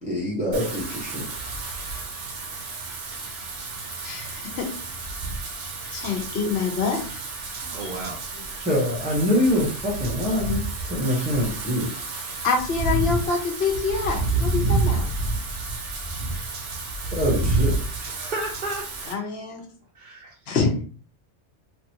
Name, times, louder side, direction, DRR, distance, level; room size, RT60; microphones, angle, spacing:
voice 1, 0.0-1.3 6.4-6.5 7.7-7.9 8.6-11.9 17.1-17.8, left 1 dB, 5° right, -4 dB, 0.6 m, -25 dB
Wind / Rain, 0.5-19.1, right 2 dB, 80° right, 1.1 m, -29 dB
voice 2, 4.0-4.7 5.9-7.0 7.8-7.9 12.4-15.1 19.1-19.6 20.5-20.8, left 4 dB, 65° left, 1 dB, 1.0 m, -26 dB
voice 3, 7.7-8.2 13.3-13.4 18.0-19.3 19.9-20.3, right 2 dB, 50° right, -3 dB, 0.7 m, -34 dB
3.0 x 2.5 x 2.8 m, 0.41 s
omnidirectional pair, 1.2 m